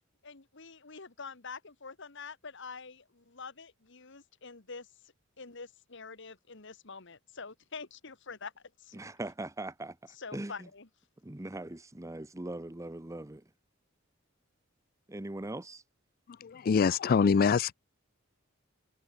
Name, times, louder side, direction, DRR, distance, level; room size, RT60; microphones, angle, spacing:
voice 1, 0.2-4.9 5.4-9.0 10.1-10.9, left 4 dB, 60° left, 1.9 m, -46 dB
voice 2, 8.9-10.7 11.2-13.4 15.1-15.8, right 1 dB, 15° right, 0.8 m, -40 dB
voice 3, 16.4-17.7, left 5 dB, 45° left, 0.4 m, -24 dB
head